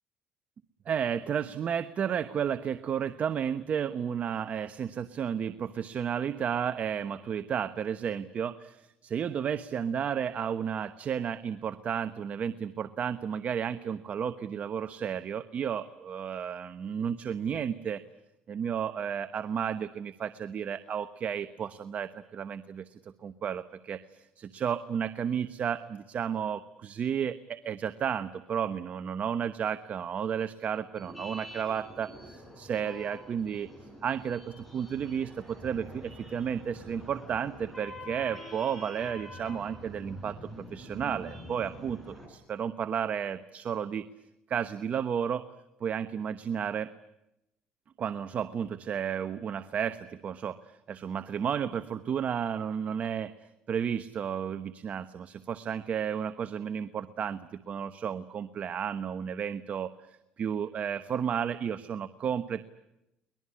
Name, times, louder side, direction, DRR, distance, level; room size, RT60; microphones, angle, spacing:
voice 1, 0.9-18.0 18.5-33.7 34.0-44.1 44.5-45.4 45.8-46.9 48.0-53.3 53.7-62.6, right 8 dB, 45° right, 10 dB, 1.0 m, -32 dB
sound 1, 30.9-42.3, equal, 5° left, 7.7 m, -46 dB
23.0 x 20.5 x 9.8 m, 0.88 s
cardioid pair, 110°, 4 cm